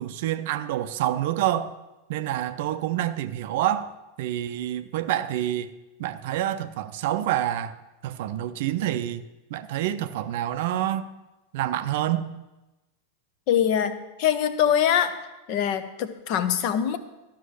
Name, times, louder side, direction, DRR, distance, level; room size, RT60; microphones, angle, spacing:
voice 1, 0.0-1.7 2.1-5.7 6.0-7.8 8.0-9.2 9.5-11.1 11.5-12.3, right 12 dB, 50° right, 0.5 m, -27 dB
voice 2, 13.5-15.2 15.5-17.0, left 9 dB, 45° left, 0.8 m, -23 dB
12.5 x 5.9 x 6.4 m
figure-of-eight pair, 90°, 0 cm